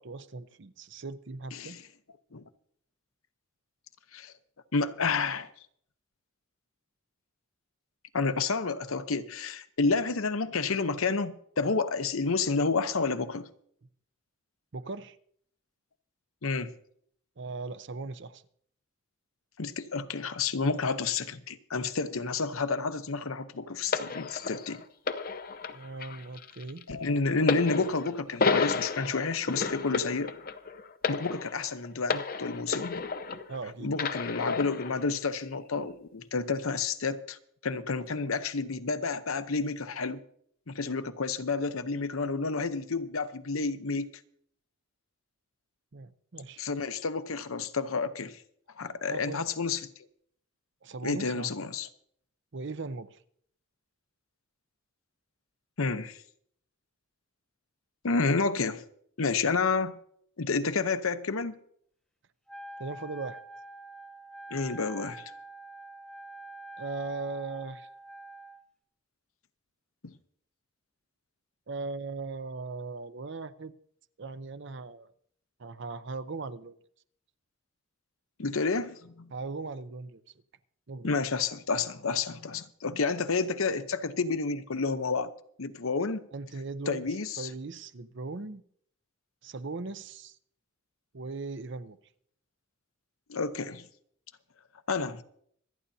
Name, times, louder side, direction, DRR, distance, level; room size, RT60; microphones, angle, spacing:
voice 1, 0.0-1.8 14.7-15.2 17.4-18.4 25.7-26.8 33.5-34.0 45.9-46.6 49.1-49.4 50.8-51.5 52.5-53.2 62.8-63.4 66.8-67.9 71.7-73.7 74.2-75.1 75.6-76.8 79.3-80.2 80.9-81.1 86.3-87.0 87.4-88.6 89.4-90.4 91.1-92.0, right 3 dB, 60° right, 0.7 m, -38 dB
voice 2, 1.5-1.8 2.3-2.4 4.1-4.3 4.7-5.5 8.1-13.5 16.4-16.7 19.6-24.8 26.9-30.3 31.1-33.0 33.8-37.4 37.6-40.2 40.7-44.1 46.6-48.4 48.8-49.8 51.0-51.9 55.8-56.2 58.0-58.8 59.2-60.0 60.4-61.6 64.5-65.2 70.0-70.1 78.4-79.3 81.0-85.3 85.6-86.2 86.9-87.5 93.3-93.8 94.9-95.2, left 4 dB, 85° left, 0.9 m, -30 dB
sound 1, 23.9-33.6 34.0-35.0 35.8-35.9, left 4 dB, 45° left, 0.7 m, -32 dB
Wind instrument woodwind instrument, 62.5-68.6, right 1 dB, 5° left, 1.0 m, -45 dB
26.0 x 10.0 x 2.8 m
head